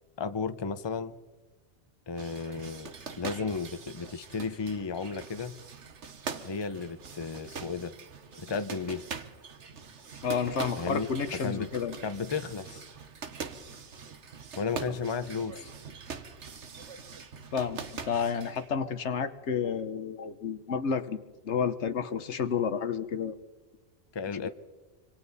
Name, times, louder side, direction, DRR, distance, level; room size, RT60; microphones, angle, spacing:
voice 1, 0.2-1.1 2.1-2.9 3.2-5.5 6.4-7.9 8.4-9.0 10.8-11.1 11.4-11.7 12.0-12.8 14.6-15.7 24.1-24.5, left 5 dB, 25° left, 11 dB, 0.7 m, -34 dB
sound 1, 2.2-18.7, right 5 dB, 85° right, 1.5 m, -43 dB
voice 2, 10.2-12.0 17.5-23.4 24.3-24.5, left 6 dB, 80° left, 11 dB, 1.3 m, -31 dB
26.0 x 25.0 x 4.1 m, 1.2 s
omnidirectional pair, 1.2 m